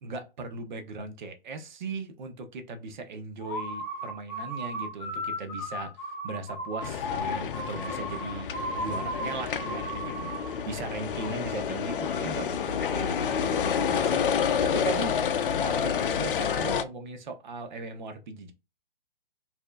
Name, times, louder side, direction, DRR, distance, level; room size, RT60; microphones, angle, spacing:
voice 1, 0.0-15.2 15.6-18.5, right 3 dB, 50° right, 0.9 m, -38 dB
sound 1, 3.4-10.6, equal, 5° left, 0.3 m, -35 dB
sound 2, 6.8-16.8, left 7 dB, 60° left, 0.6 m, -29 dB
4.5 x 2.7 x 2.3 m
hypercardioid pair, 145°, 30 cm